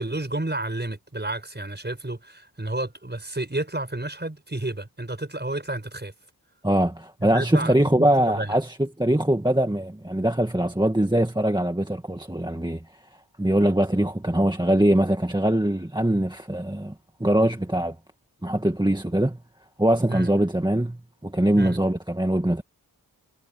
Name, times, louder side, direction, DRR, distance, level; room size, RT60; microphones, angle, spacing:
voice 1, 0.0-6.1 7.2-8.5 20.1-20.3 21.5-21.8, right 2 dB, 25° right, 5.3 m, -31 dB
voice 2, 6.6-12.8 13.4-16.9 17.2-18.0 18.4-19.4 19.8-22.6, right 1 dB, 10° right, 1.9 m, -22 dB
wide cardioid pair, 55°, 38 cm